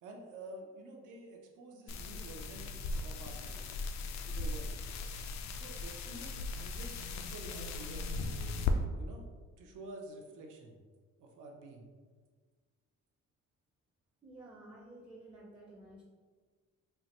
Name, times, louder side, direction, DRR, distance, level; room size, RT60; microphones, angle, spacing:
voice 1, 0.0-2.8 3.0-3.7 4.3-4.7 5.5-8.2 9.0-9.2 9.6-10.8 11.2-11.9, right 2 dB, 85° right, 1 dB, 0.7 m, -49 dB
sound 1, 1.9-8.7, left 3 dB, 65° left, 0.4 m, -38 dB
voice 2, 14.2-16.0, right 1 dB, 15° right, -3 dB, 0.5 m, -52 dB
4.3 x 2.1 x 2.9 m, 1.5 s
cardioid pair, 90°, 30 cm